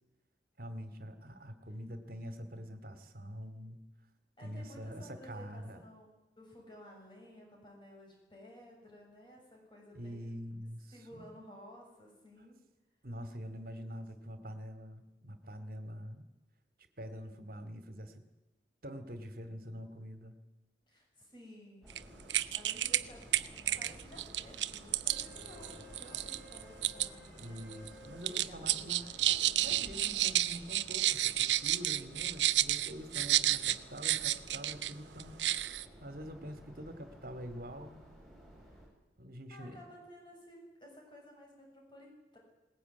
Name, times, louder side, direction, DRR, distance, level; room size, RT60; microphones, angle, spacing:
voice 1, 0.6-3.8 4.4-5.8 9.9-11.3 13.0-16.2 17.0-18.2 18.8-20.4 27.4-29.1 29.6-35.3 36.0-38.1 39.2-39.8, equal, 55° right, 10 dB, 2.5 m, -45 dB
voice 2, 4.4-6.1 6.4-10.3 10.9-12.6 20.9-22.0 22.5-23.2 23.8-27.3 28.2-29.7 38.7-38.8 39.5-42.4, equal, 25° left, 0 dB, 7.4 m, -54 dB
sound 1, 21.8-38.9, equal, ahead, 7.5 m, -54 dB
sound 2, 21.9-22.0 22.3-23.0 23.3-27.1 27.4-27.9 28.2-34.9 35.2-35.8, right 13 dB, 85° right, 0.9 m, -31 dB
Wind instrument woodwind instrument, 25.1-29.3, left 4 dB, 55° left, 4.9 m, -57 dB
21.0 x 19.5 x 9.5 m, 1.0 s
head